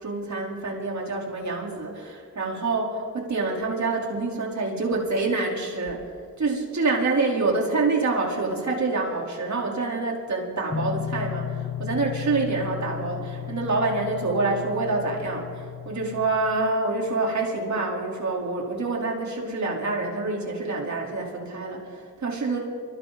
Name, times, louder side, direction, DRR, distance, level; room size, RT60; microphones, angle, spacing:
voice 1, 0.0-6.0 6.4-22.6, right 3 dB, 60° right, -1 dB, 4.6 m, -27 dB
sound 1, 10.7-16.3, left 9 dB, 25° left, 2.0 m, -34 dB
26.0 x 24.5 x 4.4 m, 2.2 s
cardioid pair, 75°, 32 cm